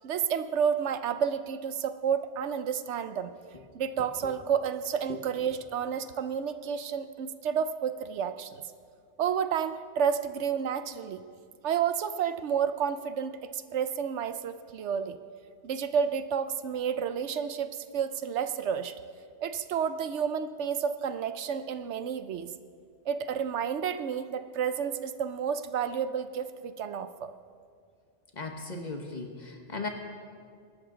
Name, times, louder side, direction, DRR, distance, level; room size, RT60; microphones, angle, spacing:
voice 1, 0.0-3.3 3.7-8.6 9.2-11.2 11.6-15.2 15.6-19.0 19.4-22.5 23.1-27.3, right 7 dB, 75° right, 11 dB, 1.0 m, -30 dB
voice 2, 28.4-29.9, left 3 dB, 40° left, 4 dB, 1.4 m, -37 dB
23.0 x 12.5 x 3.9 m, 2.2 s
omnidirectional pair, 1.2 m